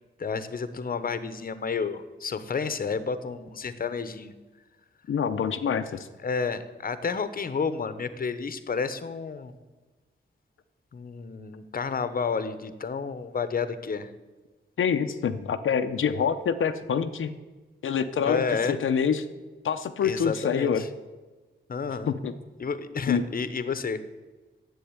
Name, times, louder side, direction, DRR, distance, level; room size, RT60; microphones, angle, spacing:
voice 1, 0.2-4.3 6.2-9.5 10.9-14.1 18.3-18.8 20.0-20.9 21.7-22.1 22.6-24.0, left 5 dB, 45° left, 13 dB, 0.9 m, -30 dB
voice 2, 5.1-6.1 14.8-17.3 17.8-19.2 19.6-20.8 22.1-22.3 23.1-23.2, left 7 dB, 80° left, 7 dB, 0.7 m, -26 dB
10.5 x 7.8 x 9.6 m, 1.3 s
wide cardioid pair, 125°, 21 cm